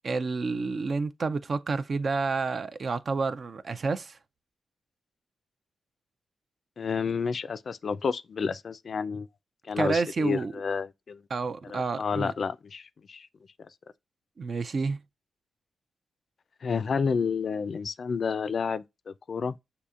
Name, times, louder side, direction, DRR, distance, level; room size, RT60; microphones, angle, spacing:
voice 1, 0.0-4.2 9.8-10.5 11.3-12.3 14.4-15.0, right 4 dB, 60° right, 0.4 m, -29 dB
voice 2, 6.8-9.3 9.6-11.2 11.6-13.3 16.6-19.6, left 5 dB, 65° left, 0.3 m, -30 dB
6.8 x 2.7 x 2.4 m
supercardioid pair, 50°, 0 cm